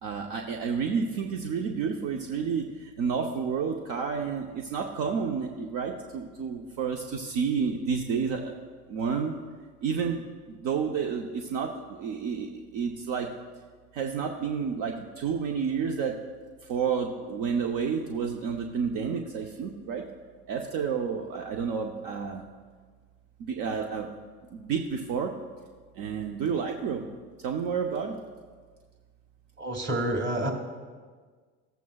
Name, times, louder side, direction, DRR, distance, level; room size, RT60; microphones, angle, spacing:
voice 1, 0.0-8.5 8.9-9.3 9.8-13.3 13.9-16.2 16.6-20.0 20.5-22.4 23.4-24.1 24.5-25.3 26.0-27.1 27.4-28.2, right 6 dB, 65° right, 3 dB, 0.8 m, -30 dB
voice 2, 29.6-30.5, right 1 dB, 30° right, 4 dB, 1.7 m, -28 dB
15.0 x 8.2 x 2.3 m, 1.5 s
hypercardioid pair, 75°, 35 cm